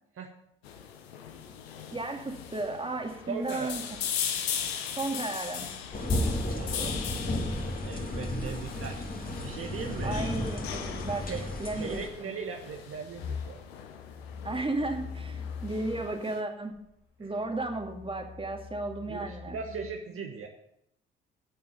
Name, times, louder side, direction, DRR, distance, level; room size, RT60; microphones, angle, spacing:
sound 1, 0.6-16.4, left 8 dB, 80° left, 1.1 m, -39 dB
voice 1, 1.9-3.8 4.9-5.7 10.0-11.3 11.6-12.0 14.4-16.8 17.2-19.6, right 2 dB, 15° right, 3 dB, 2.4 m, -34 dB
voice 2, 3.3-3.9 6.5-7.0 7.8-9.0 9.4-10.5 11.3-11.4 11.7-13.6 17.2-17.3 19.1-20.5, right 5 dB, 45° right, 1 dB, 1.5 m, -38 dB
sound 2, 5.9-12.1, left 1 dB, 30° left, 2.8 m, -33 dB
sound 3, 13.2-16.1 16.7-19.9, left 6 dB, 60° left, 2.7 m, -42 dB
8.9 x 8.7 x 9.1 m, 0.79 s
figure-of-eight pair, 45°, 31 cm